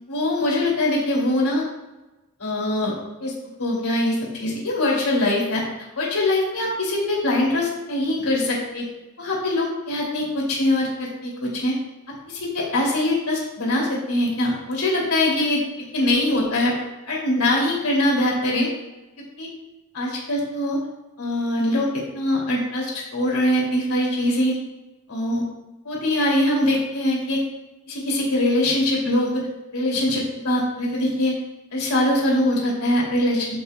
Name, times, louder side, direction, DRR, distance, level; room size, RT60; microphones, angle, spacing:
voice 1, 0.1-1.6 2.4-2.9 3.2-3.3 3.6-5.6 6.0-8.8 9.2-11.7 12.3-15.6 15.9-16.7 17.1-18.7 19.4-19.5 19.9-20.8 21.2-24.5 25.1-25.4 25.8-27.4 27.9-29.4 29.7-31.3 31.7-33.6, left 1 dB, 90° left, -3 dB, 2.5 m, -22 dB
12.0 x 5.6 x 2.2 m, 1.1 s
head